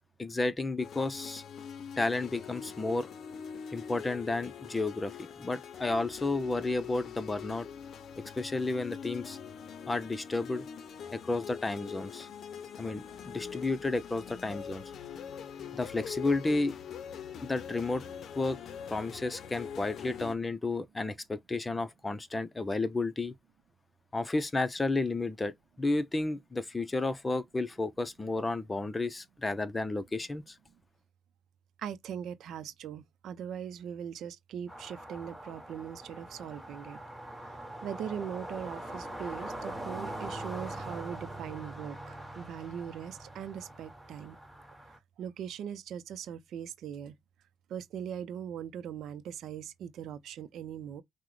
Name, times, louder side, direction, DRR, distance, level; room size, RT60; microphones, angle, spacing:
voice 1, 0.2-1.4 2.0-3.1 3.7-7.7 8.4-9.4 9.9-10.7 11.1-12.3 12.8-14.8 15.7-16.7 17.4-18.0 18.3-18.6 18.9-23.4 24.1-30.5, left 2 dB, 20° left, 0.6 m, -32 dB
sound 1, 0.8-20.3, left 7 dB, 65° left, 0.6 m, -43 dB
voice 2, 31.8-37.0 37.4-44.4 45.2-47.2 47.7-51.0, right 8 dB, 75° right, 0.6 m, -40 dB
sound 2, 34.7-45.0, right 1 dB, ahead, 1.8 m, -42 dB
5.8 x 2.1 x 3.1 m
cardioid pair, 90°, 0 cm